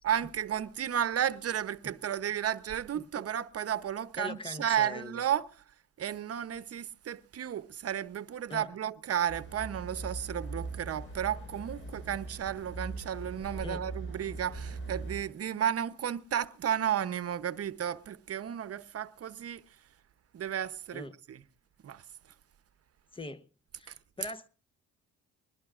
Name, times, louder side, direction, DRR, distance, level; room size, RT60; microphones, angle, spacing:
voice 1, 0.0-5.5 6.0-19.6 20.3-21.4 21.8-22.0 23.9-24.0, right 9 dB, 50° right, 0.9 m, -33 dB
voice 2, 4.2-5.2 8.5-8.7 13.6-13.8 20.9-21.2 23.1-23.5 23.7-24.5, left 3 dB, 15° left, 0.9 m, -42 dB
sound 1, 9.3-15.2, right 3 dB, 45° left, 6.7 m, -41 dB
21.5 x 20.0 x 2.5 m
cardioid pair, 90°, 30 cm